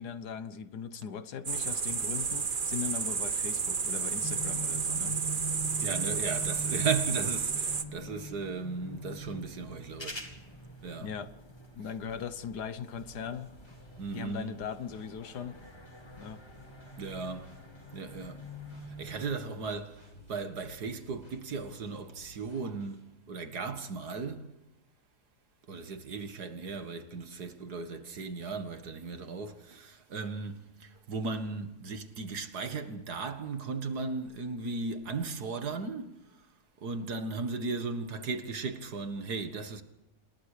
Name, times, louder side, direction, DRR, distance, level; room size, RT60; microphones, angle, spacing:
voice 1, 0.0-5.2 11.0-11.3 11.7-13.5 14.1-15.6 16.2-16.4, left 7 dB, 75° left, 1.6 m, -39 dB
sound 1, 1.5-7.8, right 5 dB, 35° right, 1.0 m, -31 dB
sound 2, 4.2-19.4, right 1 dB, 15° left, 1.7 m, -44 dB
voice 2, 5.8-10.3 10.8-11.1 14.0-14.5 17.0-17.5 17.9-18.4 18.8-24.5 25.7-36.1 36.8-39.8, right 4 dB, 75° right, 2.3 m, -36 dB
sound 3, 13.0-23.1, left 1 dB, 40° left, 6.9 m, -56 dB
27.5 x 21.0 x 5.0 m
omnidirectional pair, 1.7 m